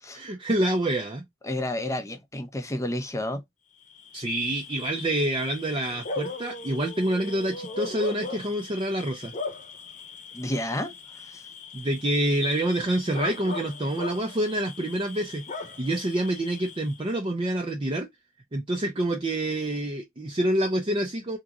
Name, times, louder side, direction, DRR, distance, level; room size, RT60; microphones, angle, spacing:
voice 1, 0.1-1.2 4.1-9.3 11.7-15.4 15.8-18.1 18.5-21.4, right 1 dB, 25° right, 0.6 m, -27 dB
voice 2, 1.4-3.4 10.3-11.4, left 1 dB, 15° left, 0.7 m, -31 dB
Bark / Cricket, 3.8-17.1, left 4 dB, 40° left, 1.0 m, -39 dB
3.6 x 2.9 x 2.3 m
head